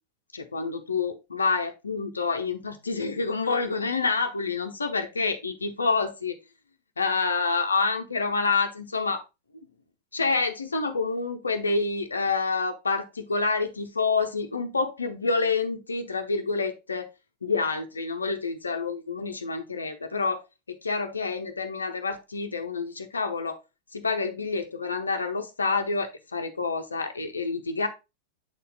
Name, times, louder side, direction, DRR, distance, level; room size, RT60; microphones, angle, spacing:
voice 1, 0.3-6.3 7.0-9.2 10.1-17.1 17.4-20.4 20.7-23.6 23.9-27.9, left 4 dB, 75° left, 0.8 m, -28 dB
8.0 x 4.2 x 3.6 m
figure-of-eight pair, 90°, 0 cm